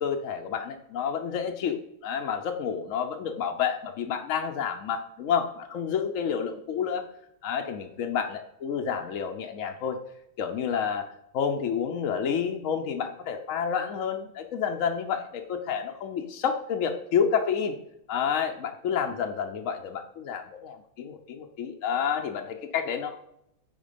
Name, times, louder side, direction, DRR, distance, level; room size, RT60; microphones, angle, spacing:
voice 1, 0.0-7.0 7.4-10.0 10.4-11.1 11.3-17.8 18.1-23.2, left 7 dB, 70° left, 4 dB, 0.7 m, -29 dB
9.1 x 4.4 x 5.1 m, 0.76 s
omnidirectional pair, 2.2 m